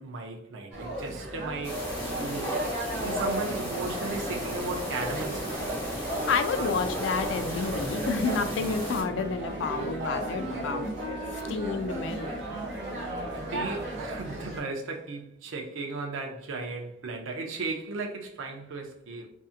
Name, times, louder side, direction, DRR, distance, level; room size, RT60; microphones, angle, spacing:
voice 1, 0.0-2.7 3.0-5.6 13.3-19.3, right 3 dB, 85° right, 0.4 m, -36 dB
sound 1, 0.7-14.6, right 1 dB, 65° right, 0.8 m, -36 dB
sound 2, 1.6-9.0, equal, 10° left, 0.8 m, -34 dB
voice 2, 6.3-10.9 11.5-12.3, left 5 dB, 70° left, 0.3 m, -29 dB
Wind instrument woodwind instrument, 8.5-14.3, right 1 dB, 20° right, 0.6 m, -42 dB
2.7 x 2.4 x 2.4 m
head